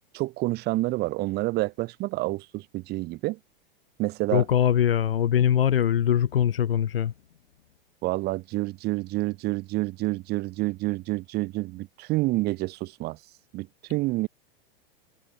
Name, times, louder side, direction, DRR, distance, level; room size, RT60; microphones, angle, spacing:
voice 1, 0.1-3.4 4.0-4.4 8.0-13.2 13.5-14.3, right 20 dB, 35° right, 0.8 m, -28 dB
voice 2, 4.3-7.1, left 10 dB, 75° left, 1.4 m, -22 dB
hypercardioid pair, 100°, 29 cm